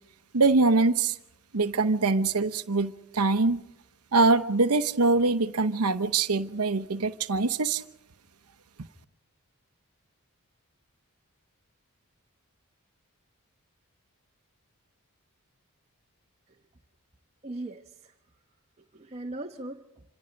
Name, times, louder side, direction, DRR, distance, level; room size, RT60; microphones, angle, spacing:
voice 1, 0.3-1.2 1.5-3.6 4.1-7.8, right 3 dB, 80° right, 9 dB, 0.9 m, -23 dB
voice 2, 17.4-18.1 18.8-20.0, right 2 dB, 30° right, 2 dB, 1.1 m, -39 dB
27.0 x 26.0 x 5.2 m, 0.84 s
head